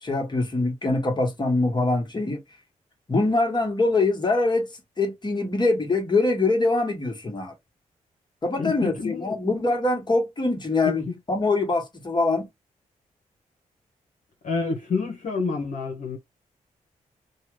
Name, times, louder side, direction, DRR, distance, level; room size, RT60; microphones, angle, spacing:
voice 1, 0.0-2.4 3.1-4.7 5.0-7.5 8.4-12.5, left 2 dB, 30° left, 1.6 m, -23 dB
voice 2, 8.6-9.3 11.1-11.2 14.4-16.2, left 4 dB, 65° left, 1.1 m, -28 dB
2.7 x 2.4 x 3.1 m
supercardioid pair, 55°, 14 cm